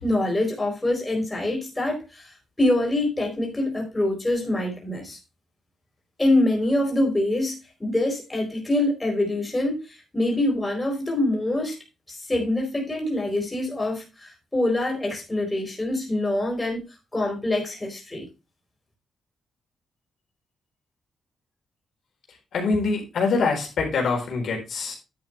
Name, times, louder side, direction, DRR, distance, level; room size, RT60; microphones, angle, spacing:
voice 1, 0.0-2.3 2.6-5.2 6.2-11.8 12.1-16.8 17.1-18.2, left 1 dB, 10° left, 0 dB, 4.6 m, -25 dB
voice 2, 22.5-24.9, left 4 dB, 65° left, 0 dB, 4.0 m, -24 dB
10.5 x 8.3 x 3.3 m, 0.27 s
cardioid pair, 135°, 0 cm